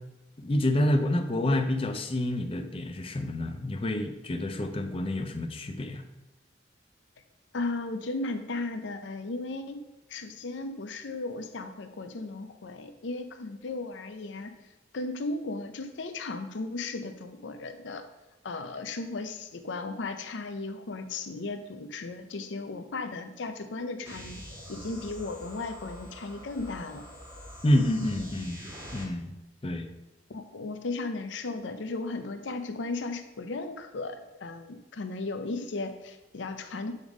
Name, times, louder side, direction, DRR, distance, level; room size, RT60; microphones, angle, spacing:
voice 1, 0.4-6.0 27.6-28.6 28.9-29.3 29.6-29.9, left 1 dB, 30° left, 7 dB, 0.5 m, -28 dB
voice 2, 7.5-9.8 10.1-14.5 14.9-18.0 18.4-24.4 24.7-27.0 30.3-36.9, left 3 dB, 85° left, 8 dB, 0.6 m, -35 dB
sound 1, 24.1-29.1, equal, 15° right, 1.4 m, -45 dB
7.9 x 3.6 x 4.9 m, 0.99 s
head